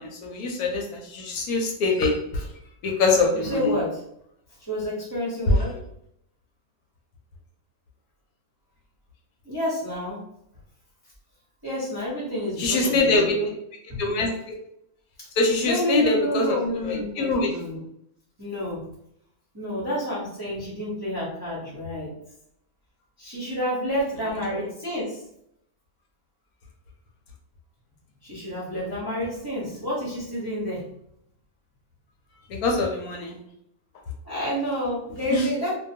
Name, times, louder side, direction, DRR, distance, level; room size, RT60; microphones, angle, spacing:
voice 1, 0.0-2.4 2.8-3.7 5.7-5.8 12.6-13.3 14.0-14.3 15.4-17.5 24.5-24.6 32.5-33.4 35.3-35.4, left 3 dB, 75° left, 1 dB, 1.0 m, -24 dB
voice 2, 3.3-4.0 4.7-5.8 9.4-10.2 11.6-13.5 13.9-14.0 15.2-15.3 15.6-17.8 18.4-18.8 19.5-22.1 23.2-25.2 28.2-30.9 34.2-35.7, equal, 20° right, -8 dB, 0.6 m, -29 dB
2.5 x 2.2 x 2.7 m, 0.74 s
omnidirectional pair, 1.7 m